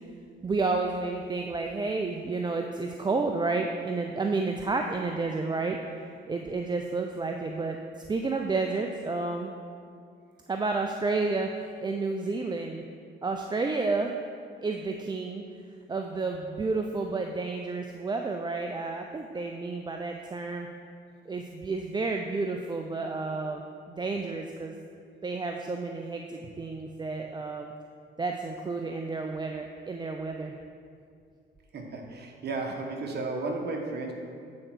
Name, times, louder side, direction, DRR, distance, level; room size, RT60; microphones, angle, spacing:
voice 1, 0.4-5.8 6.3-7.8 8.1-9.5 10.5-12.8 13.2-14.1 14.6-15.4 15.9-20.7 21.3-24.7 25.2-27.7 28.2-30.5, right 3 dB, 20° right, 3 dB, 0.5 m, -31 dB
voice 2, 31.7-34.1, right 3 dB, 55° right, 1 dB, 1.3 m, -33 dB
8.6 x 4.5 x 6.1 m, 2.3 s
cardioid pair, 90°, 20 cm